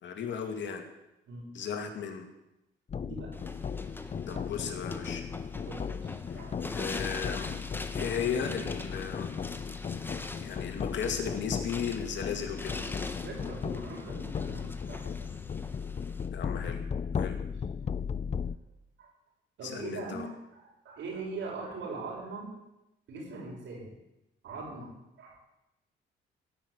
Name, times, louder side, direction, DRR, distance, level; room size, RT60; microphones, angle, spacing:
voice 1, 0.0-0.8 1.5-2.3 4.3-5.2 6.3-7.5 7.9-9.3 10.0-12.7 16.3-16.8 17.2-17.4 19.6-20.3, left 7 dB, 65° left, 5 dB, 2.3 m, -35 dB
sound 1, 2.9-18.6, left 6 dB, 35° left, 0.5 m, -36 dB
voice 2, 3.0-3.3 4.3-4.7 5.6-6.5 8.0-8.2 13.2-15.3 19.0-19.1 19.6-22.5 23.1-23.9 24.4-24.9 25.2-25.4, right 3 dB, 70° right, -2 dB, 6.5 m, -41 dB
sound 2, 3.3-16.3, left 2 dB, 10° left, 1.3 m, -43 dB
16.5 x 6.4 x 8.4 m, 0.90 s
cardioid pair, 90°, 20 cm